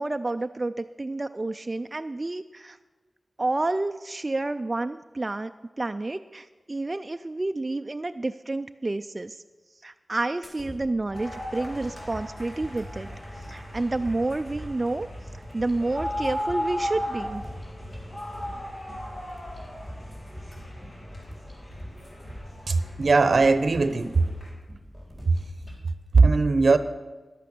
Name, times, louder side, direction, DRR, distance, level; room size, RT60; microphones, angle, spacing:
voice 1, 0.0-2.8 3.4-5.5 5.8-9.4 9.8-13.1 13.5-15.1 15.5-17.4, right 2 dB, 35° right, 8 dB, 0.3 m, -29 dB
sound 1, 10.4-25.8, equal, 30° left, 3.9 m, -45 dB
sound 2, 11.1-24.5, equal, 60° left, 3.2 m, -37 dB
voice 2, 22.7-24.3 25.3-25.4 26.1-26.8, right 4 dB, 70° right, 12 dB, 0.7 m, -19 dB
11.0 x 8.4 x 6.7 m, 1.3 s
cardioid pair, 55°, 0 cm